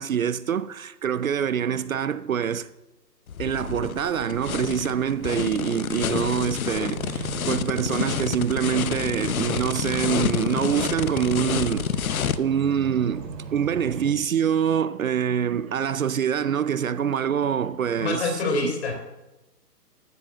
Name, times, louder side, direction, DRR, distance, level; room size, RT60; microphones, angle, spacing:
voice 1, 0.0-2.7 3.4-18.3, right 8 dB, 55° right, 0.6 m, -25 dB
sound 1, 3.3-12.4, left 8 dB, 60° left, 0.8 m, -29 dB
sound 2, 6.8-14.1, right 5 dB, 75° right, 2.3 m, -37 dB
voice 2, 18.0-18.9, left 3 dB, 40° left, 3.4 m, -25 dB
13.0 x 7.4 x 7.2 m
hypercardioid pair, 150°, 49 cm